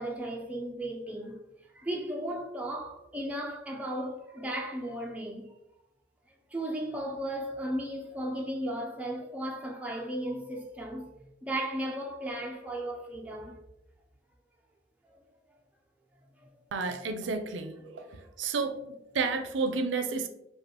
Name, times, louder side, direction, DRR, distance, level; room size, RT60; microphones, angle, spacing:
voice 1, 0.0-1.4 1.7-5.5 6.5-11.1 11.4-13.6 15.1-15.2 17.8-18.1, right 1 dB, 5° right, 0.3 m, -35 dB
voice 2, 16.7-18.1 18.4-18.7 19.1-20.3, right 4 dB, 80° right, 0.5 m, -30 dB
5.2 x 2.3 x 2.9 m
head